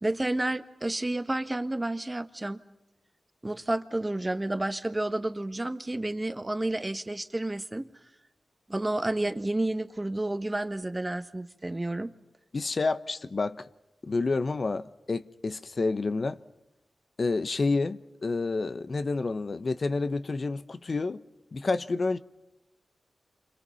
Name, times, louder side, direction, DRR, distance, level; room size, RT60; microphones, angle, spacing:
voice 1, 0.0-2.6 3.4-7.9 8.7-12.1, right 1 dB, 25° right, 1.5 m, -30 dB
voice 2, 12.5-13.7 14.0-16.4 17.2-21.2 21.5-22.2, left 3 dB, 55° left, 1.0 m, -29 dB
28.5 x 25.5 x 5.8 m
cardioid pair, 45°, 0 cm